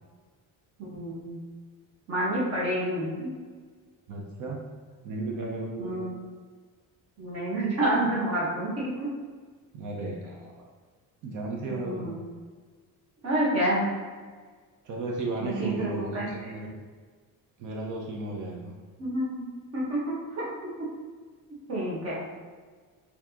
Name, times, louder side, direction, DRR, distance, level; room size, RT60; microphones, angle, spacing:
voice 1, 0.9-1.4 2.1-3.3 5.8-6.1 7.2-9.1 11.7-12.2 13.2-13.9 15.4-16.3 19.0-20.5 21.7-22.2, right 1 dB, 45° right, -6 dB, 1.2 m, -29 dB
voice 2, 4.1-4.7 5.0-6.1 9.7-10.6 11.2-12.1 14.8-16.8 17.6-18.8, right 2 dB, 60° right, -1 dB, 0.6 m, -34 dB
4.3 x 2.7 x 2.8 m, 1.5 s
cardioid pair, 170°, 35 cm